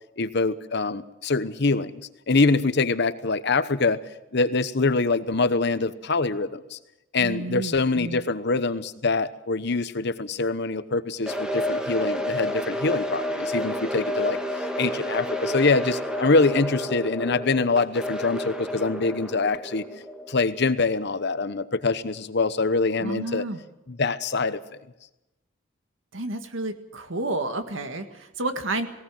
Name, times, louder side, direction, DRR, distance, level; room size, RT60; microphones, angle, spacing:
voice 1, 0.2-2.0 2.3-4.0 4.3-6.8 7.1-19.9 20.3-23.4 23.9-24.6, left 3 dB, 60° left, 13 dB, 1.0 m, -24 dB
voice 2, 7.2-8.2 23.0-23.6 26.1-28.9, right 2 dB, 80° right, 8 dB, 1.8 m, -31 dB
sound 1, 11.3-21.3, equal, 5° right, 1.7 m, -30 dB
18.5 x 18.5 x 7.7 m, 0.96 s
head